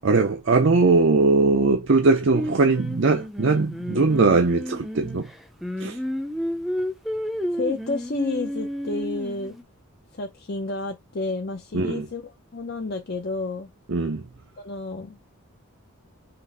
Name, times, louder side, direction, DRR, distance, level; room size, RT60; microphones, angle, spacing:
voice 1, 0.0-5.3 5.8-6.0 11.7-12.1 13.9-14.2, right 3 dB, 55° right, 0.6 m, -20 dB
Singing, 2.3-9.6, equal, ahead, 0.5 m, -31 dB
voice 2, 7.5-9.6 10.1-13.7 14.6-15.2, left 3 dB, 45° left, 0.6 m, -31 dB
5.8 x 2.6 x 3.3 m
head